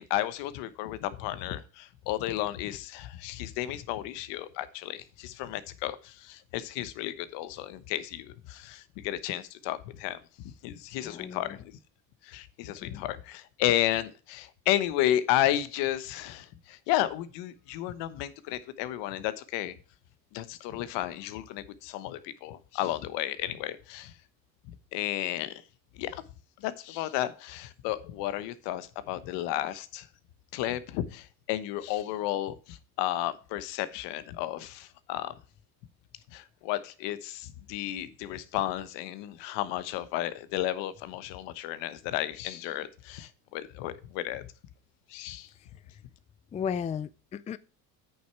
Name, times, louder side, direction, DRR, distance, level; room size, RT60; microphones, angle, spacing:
voice 1, 0.0-10.2 10.6-11.8 12.2-19.7 20.3-24.1 24.7-25.5 25.9-26.2 26.6-30.1 30.5-35.3 36.3-44.5 45.1-45.5, left 13 dB, 75° left, 1.1 m, -33 dB
voice 2, 11.0-11.6 12.8-13.0 46.5-47.6, left 7 dB, 20° left, 0.3 m, -35 dB
8.7 x 6.9 x 4.6 m
supercardioid pair, 105°, 43 cm